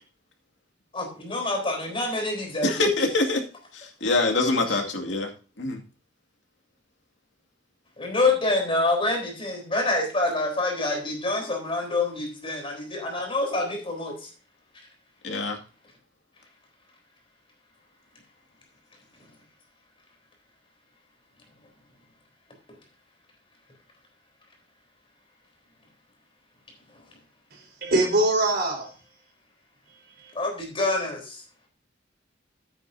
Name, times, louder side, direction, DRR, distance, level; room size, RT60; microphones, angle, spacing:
voice 1, 0.9-2.8 4.7-4.8 8.0-14.3 30.3-31.4, left 2 dB, 30° left, 2 dB, 3.8 m, -26 dB
voice 2, 2.6-3.4 3.7-5.3 5.6-5.8 15.2-15.6, left 3 dB, 80° left, 2 dB, 2.3 m, -24 dB
voice 3, 27.5-28.9 30.2-30.3, right 1 dB, 60° right, 1 dB, 4.6 m, -23 dB
12.5 x 9.1 x 2.7 m, 0.34 s
head